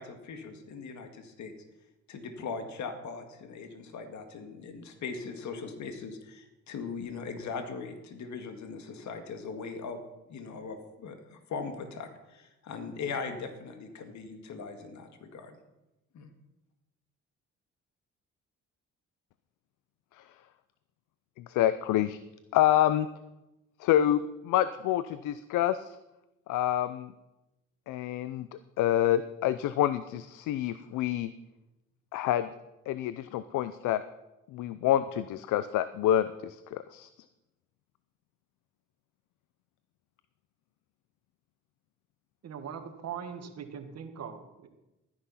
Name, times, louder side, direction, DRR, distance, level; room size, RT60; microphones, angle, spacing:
voice 1, 0.0-1.5 2.1-10.0 10.3-15.6 16.1-16.3, left 5 dB, 70° left, 6 dB, 1.9 m, -40 dB
voice 2, 21.4-22.2 22.5-23.1 23.8-26.0 26.5-27.1 27.9-28.5 28.8-31.3 32.1-32.5 32.9-34.0 34.5-37.1, left 12 dB, 85° left, 14 dB, 0.6 m, -27 dB
voice 3, 42.4-44.7, right 7 dB, 55° right, 6 dB, 1.7 m, -41 dB
13.5 x 10.0 x 5.7 m, 0.97 s
cardioid pair, 90°, 30 cm